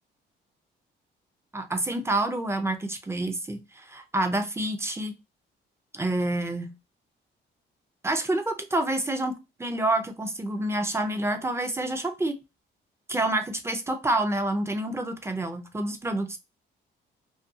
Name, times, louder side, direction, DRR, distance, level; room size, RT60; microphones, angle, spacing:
voice 1, 1.5-5.1 5.9-6.7 8.0-12.4 13.1-16.4, right 1 dB, 15° right, 0.5 m, -28 dB
2.5 x 2.3 x 2.6 m
cardioid pair, 90°, 20 cm